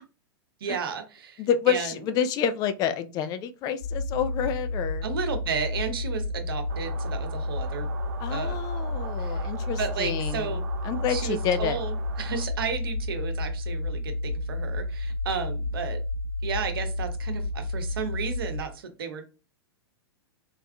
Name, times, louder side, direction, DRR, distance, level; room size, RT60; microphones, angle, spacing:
voice 1, 0.6-2.0 5.0-7.9 8.3-8.6 9.2-9.4 9.8-10.6 11.1-16.0 16.4-19.2, right 6 dB, 65° right, 0.9 m, -33 dB
voice 2, 1.4-5.0 8.2-11.8, left 8 dB, 30° left, 0.4 m, -28 dB
sound 1, 3.8-18.6, left 2 dB, 70° left, 1.9 m, -31 dB
sound 2, 6.7-12.4, right 8 dB, 40° right, 0.5 m, -43 dB
4.0 x 3.4 x 2.2 m
figure-of-eight pair, 100°, 13 cm